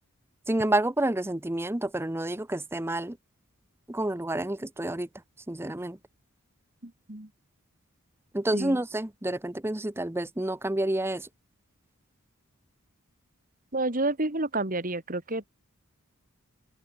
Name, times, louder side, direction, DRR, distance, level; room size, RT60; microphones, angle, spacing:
voice 1, 0.5-3.2 3.9-5.1 5.5-6.0 8.3-11.3, right 1 dB, 10° right, 0.7 m, -29 dB
voice 2, 6.8-7.3 8.5-8.8 13.7-15.5, right 2 dB, 40° right, 2.5 m, -30 dB
head